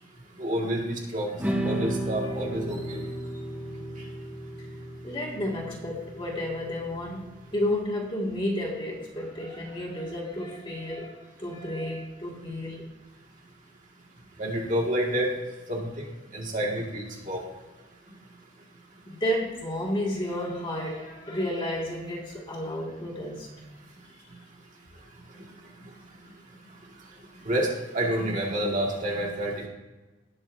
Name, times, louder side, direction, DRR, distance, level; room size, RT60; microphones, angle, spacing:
voice 1, 0.4-1.3 1.6-3.0 14.4-15.3 15.7-16.0 16.3-17.4 27.4-29.7, right 1 dB, 40° right, -2 dB, 2.1 m, -28 dB
sound 1, 1.4-7.7, right 1 dB, 10° right, 1.1 m, -34 dB
voice 2, 2.0-2.3 4.6-4.7 5.0-12.9 19.1-23.5, left 1 dB, 25° left, -2 dB, 2.2 m, -32 dB
18.5 x 7.6 x 2.7 m, 1.1 s
head